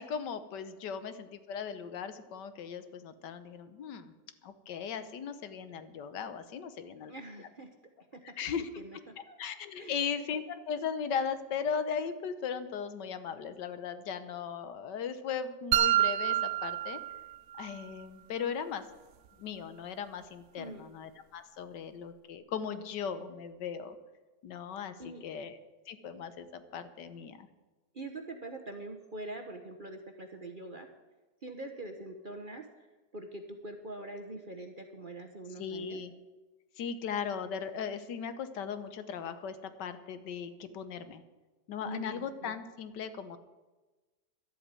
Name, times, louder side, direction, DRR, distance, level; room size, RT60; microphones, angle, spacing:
voice 1, 0.0-4.1 4.4-7.1 7.4-7.5 8.2-8.7 9.4-17.0 17.6-18.8 19.4-24.0 24.4-25.6 25.9-27.5 35.6-36.1 36.8-41.2 41.7-43.4, left 7 dB, 75° left, 11 dB, 1.5 m, -38 dB
voice 2, 7.1-7.7 8.1-8.5 8.8-9.4 9.8-10.0 20.6-20.8 25.0-25.3 27.9-30.9 31.4-32.7 33.1-36.0 41.8-42.5, right 2 dB, 40° right, 5 dB, 0.8 m, -44 dB
sound 1, 15.7-17.7, right 12 dB, 75° right, 0.7 m, -28 dB
12.0 x 8.1 x 8.9 m, 1.2 s
omnidirectional pair, 1.9 m